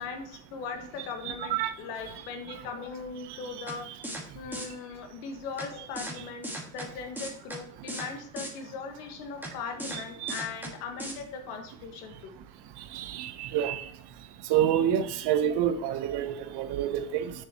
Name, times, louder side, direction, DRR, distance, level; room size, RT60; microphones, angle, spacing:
voice 1, 0.0-3.9 4.3-12.1, left 5 dB, 85° left, 1.6 m, -39 dB
voice 2, 1.3-1.7 10.2-10.3 12.9-13.8 14.5-17.3, right 10 dB, 55° right, 1.0 m, -27 dB
sound 1, 3.7-3.8 4.0-4.2 4.5-4.7 5.6-5.7 6.0-6.1 6.4-6.9 7.2-7.6 7.9-8.1 8.4-8.5 9.4-9.5 9.8-10.0 10.3-10.7 11.0-11.1, right 1 dB, 5° right, 1.6 m, -36 dB
7.1 x 6.9 x 2.9 m
supercardioid pair, 100°, 46 cm